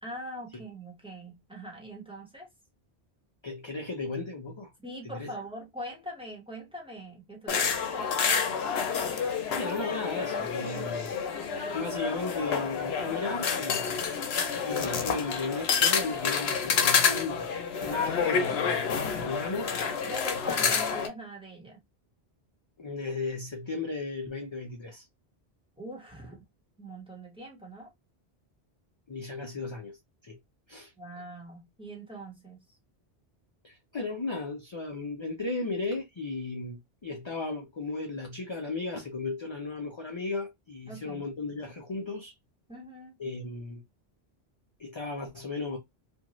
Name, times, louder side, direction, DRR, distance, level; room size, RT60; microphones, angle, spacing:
voice 1, 0.0-2.5 4.8-8.4 17.8-18.1 20.0-21.8 25.8-26.4 26.8-27.9 31.0-32.6 40.9-41.2 42.7-43.2, equal, 5° right, 1.2 m, -42 dB
voice 2, 3.4-4.7 5.1-5.3 9.5-11.1 11.7-14.0 14.6-17.4 17.8-19.8 22.8-25.1 29.1-30.0 30.2-30.4 30.7-30.9 33.6-42.3 43.2-43.8 44.8-45.8, left 3 dB, 35° left, 0.5 m, -35 dB
sound 1, 7.5-21.1, left 6 dB, 75° left, 0.9 m, -29 dB
2.6 x 2.4 x 2.9 m
omnidirectional pair, 1.1 m